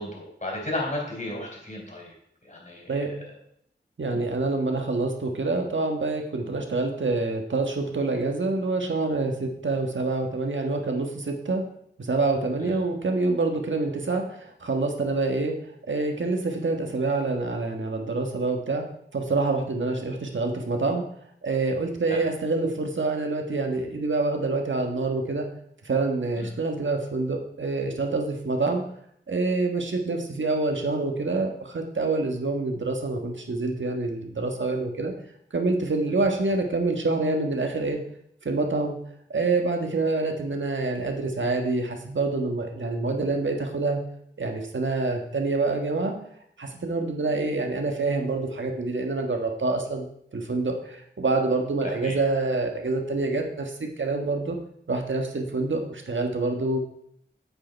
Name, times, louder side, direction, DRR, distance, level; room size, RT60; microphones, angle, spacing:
voice 1, 0.0-2.1 2.4-2.9 12.6-12.8 22.1-22.2 26.4-26.5 52.0-52.2, left 1 dB, 40° left, -1 dB, 4.3 m, -33 dB
voice 2, 4.0-11.6 12.0-15.5 15.9-18.8 19.1-21.0 21.4-25.5 25.8-28.8 29.3-35.1 35.5-38.0 38.4-39.0 39.3-44.0 44.4-46.1 46.6-50.1 50.3-54.6 54.9-56.8, right 3 dB, 80° right, 3 dB, 1.6 m, -26 dB
8.7 x 8.5 x 4.6 m, 0.69 s
wide cardioid pair, 75°, 19 cm